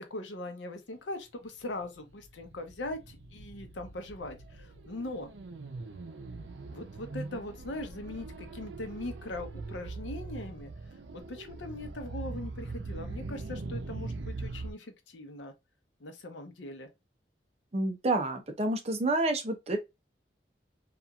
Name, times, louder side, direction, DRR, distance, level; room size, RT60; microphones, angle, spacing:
voice 1, 0.1-5.3 6.7-10.7 11.1-15.5 16.0-16.9, left 2 dB, 90° left, 0.7 m, -40 dB
sound 1, 1.6-14.7, right 3 dB, 85° right, 0.6 m, -42 dB
voice 2, 17.7-19.8, right 2 dB, 35° right, 0.6 m, -29 dB
2.9 x 2.4 x 2.3 m
head